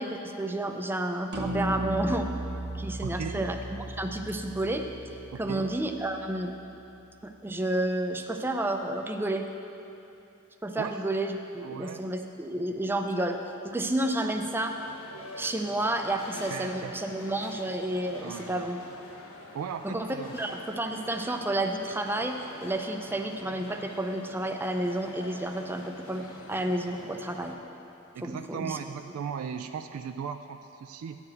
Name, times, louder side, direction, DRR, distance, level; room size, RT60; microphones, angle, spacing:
voice 1, 0.0-2.3 2.8-3.6 3.9-4.9 5.4-6.5 7.2-9.5 10.6-13.4 13.6-14.7 15.4-18.8 19.8-27.6 28.2-28.8, right 1 dB, 10° right, 5 dB, 0.4 m, -31 dB
sound 1, 1.3-5.8, right 1 dB, 50° right, 0.9 m, -35 dB
voice 2, 3.0-3.4 5.3-5.7 10.8-10.9 11.6-12.1 16.5-16.9 18.2-18.6 19.5-20.3 28.1-31.2, right 7 dB, 85° right, 8 dB, 0.3 m, -37 dB
sound 2, 14.6-27.5, left 1 dB, 80° left, 1.2 m, -45 dB
9.7 x 4.8 x 7.8 m, 2.8 s
head